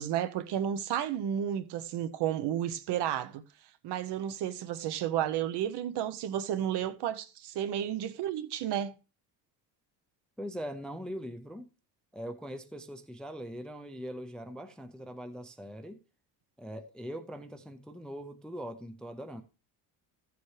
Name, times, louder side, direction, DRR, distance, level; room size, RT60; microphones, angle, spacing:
voice 1, 0.0-3.4 3.8-8.9, right 10 dB, 65° right, 0.8 m, -32 dB
voice 2, 10.4-11.7 12.1-16.0 16.6-19.4, equal, ahead, 0.4 m, -41 dB
14.0 x 7.1 x 3.2 m
cardioid pair, 150°, 43 cm